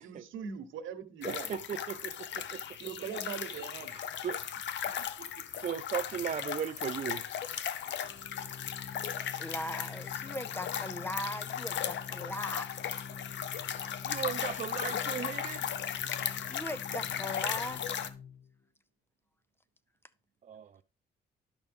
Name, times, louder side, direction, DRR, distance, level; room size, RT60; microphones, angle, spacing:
voice 1, 0.0-1.5 2.8-3.9 5.0-5.1, right 7 dB, 80° right, 1.1 m, -41 dB
sound 1, 1.2-18.1, left 9 dB, 65° left, 0.8 m, -37 dB
voice 2, 1.2-2.6 3.5-3.6 3.9-4.4 5.6-7.2 14.0-15.7 20.4-20.8, right 8 dB, 40° right, 0.4 m, -37 dB
Organ, 7.8-18.6, left 6 dB, 35° left, 0.9 m, -47 dB
voice 3, 9.4-12.7 16.5-17.8, left 1 dB, 10° left, 0.5 m, -39 dB
11.0 x 6.0 x 3.5 m
cardioid pair, 90°, 20 cm